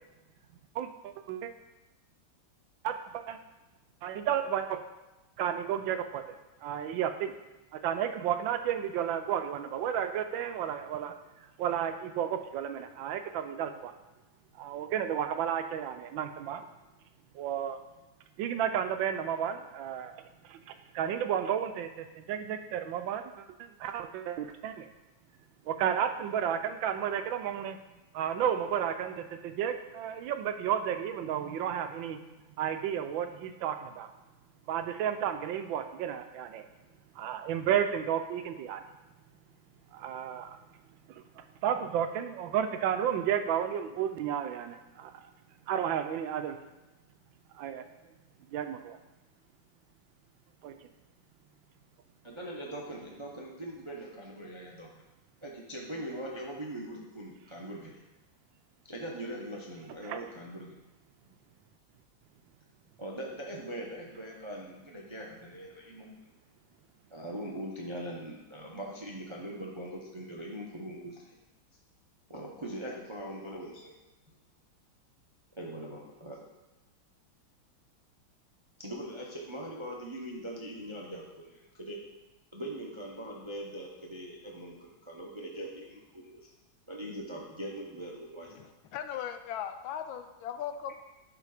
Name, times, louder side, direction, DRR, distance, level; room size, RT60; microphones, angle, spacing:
voice 1, 0.7-1.5 2.8-3.4 4.0-4.8 5.4-6.2 6.6-7.3 7.7-11.1 11.6-13.9 14.5-16.6 17.3-17.8 18.4-20.2 20.4-24.9 25.7-27.8 28.1-32.2 32.6-34.1 34.7-36.7 37.1-38.8 39.9-40.6 41.1-45.3 45.7-46.6 47.5-47.9 48.5-49.0 50.6-50.8 60.0-60.2, right 9 dB, 80° right, 8 dB, 1.3 m, -32 dB
voice 2, 52.2-54.9 55.4-58.0 58.8-60.7 61.2-61.3 63.0-66.1 67.1-71.3 72.3-73.9 75.6-76.4 78.8-82.0 82.5-86.4 86.9-88.5, right 1 dB, 35° right, -2 dB, 0.4 m, -41 dB
voice 3, 88.5-90.9, left 9 dB, 80° left, 9 dB, 1.4 m, -38 dB
11.0 x 4.1 x 4.9 m, 1.0 s
omnidirectional pair, 2.2 m